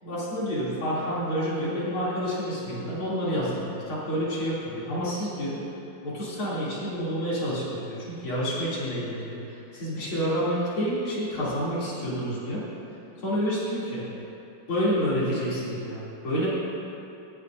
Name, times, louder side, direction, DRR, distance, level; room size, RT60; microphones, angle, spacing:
voice 1, 0.0-5.6 6.0-12.6 13.2-14.1 14.7-16.5, equal, 85° left, -9 dB, 3.9 m, -29 dB
18.0 x 11.0 x 2.7 m, 2.9 s
omnidirectional pair, 2.2 m